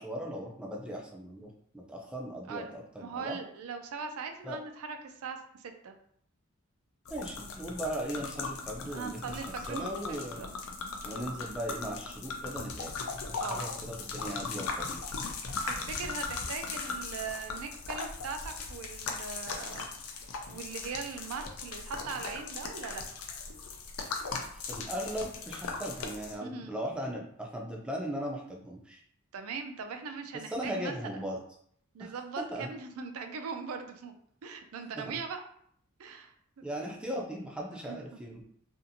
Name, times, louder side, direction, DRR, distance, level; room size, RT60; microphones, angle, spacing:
voice 1, 0.0-3.4 4.4-4.6 7.1-9.4 9.7-10.4 11.0-12.9 13.3-15.0 24.5-29.0 30.5-31.4 32.0-32.7 34.9-35.2 36.6-38.4, equal, 5° right, -1 dB, 0.4 m, -38 dB
voice 2, 2.5-5.9 8.9-10.5 13.4-13.6 15.7-19.9 20.5-23.0 26.4-26.8 29.3-31.2 31.9-34.1 34.4-35.4 36.0-36.3 37.9-38.0, right 5 dB, 90° right, 6 dB, 0.4 m, -40 dB
sound 1, 7.1-26.3, left 4 dB, 80° left, 0.4 m, -38 dB
2.7 x 2.4 x 2.6 m, 0.65 s
head